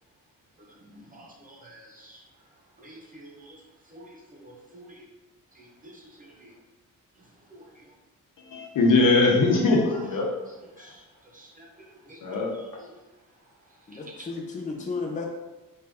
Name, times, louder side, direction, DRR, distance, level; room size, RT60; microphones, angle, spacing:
voice 1, 1.1-2.2 2.8-3.6 3.9-5.0 5.6-6.5 10.8-11.0 11.3-11.7 12.1-12.2, right 1 dB, 25° right, -1 dB, 0.5 m, -49 dB
voice 2, 8.4-10.3 10.8-10.9 12.2-12.5, left 3 dB, 70° left, -1 dB, 0.9 m, -21 dB
voice 3, 13.9-15.3, left 4 dB, 20° left, 0 dB, 0.6 m, -33 dB
4.3 x 2.6 x 3.5 m, 1.0 s
wide cardioid pair, 160°, 34 cm